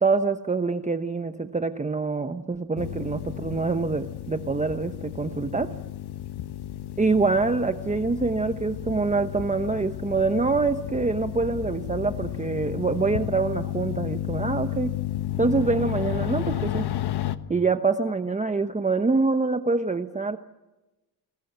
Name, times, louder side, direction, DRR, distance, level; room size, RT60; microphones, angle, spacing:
voice 1, 0.0-5.7 7.0-14.9 15.4-16.9 17.5-20.4, right 4 dB, 15° right, 8 dB, 1.0 m, -25 dB
sound 1, 2.8-17.4, left 12 dB, 70° left, 1.3 m, -32 dB
28.5 x 21.5 x 8.2 m, 1.1 s
cardioid pair, 130°, 41 cm